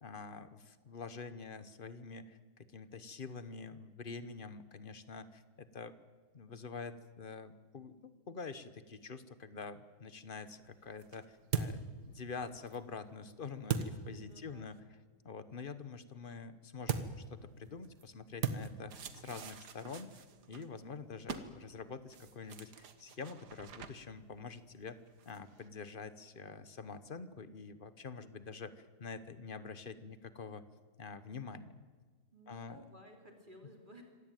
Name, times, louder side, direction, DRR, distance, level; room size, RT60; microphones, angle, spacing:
voice 1, 0.0-5.9 6.3-14.8 15.2-25.0 25.3-30.6 31.0-31.8 32.5-32.8, left 4 dB, 35° left, 13 dB, 1.0 m, -46 dB
sound 1, 10.4-14.8 16.8-25.7, right 7 dB, 70° right, 1.9 m, -43 dB
voice 2, 14.1-14.8 32.3-34.0, equal, 30° right, 2 dB, 3.1 m, -56 dB
26.0 x 16.5 x 9.1 m, 1.5 s
omnidirectional pair, 1.8 m